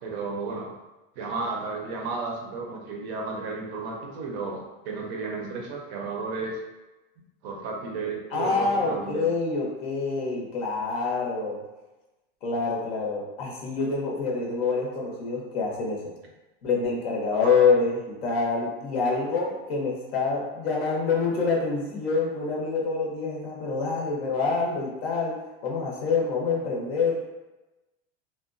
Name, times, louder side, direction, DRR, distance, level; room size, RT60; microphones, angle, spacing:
voice 1, 0.0-0.7 1.2-6.6 7.4-9.2 17.4-17.5, right 4 dB, 35° right, -1 dB, 0.4 m, -33 dB
voice 2, 8.3-11.6 12.4-16.1 16.6-27.2, left 4 dB, 80° left, -2 dB, 0.9 m, -26 dB
2.8 x 2.1 x 2.4 m, 1.1 s
supercardioid pair, 175°, 30 cm